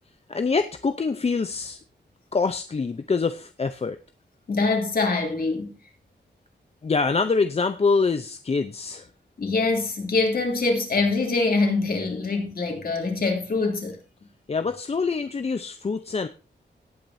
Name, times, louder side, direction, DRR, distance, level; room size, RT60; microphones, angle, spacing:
voice 1, 0.3-1.8 2.3-4.0 6.8-9.1 14.5-16.3, left 4 dB, 35° left, 0.6 m, -25 dB
voice 2, 4.5-5.7 9.4-14.0, left 3 dB, 50° left, 3.0 m, -24 dB
17.5 x 8.7 x 2.7 m
wide cardioid pair, 170°, 19 cm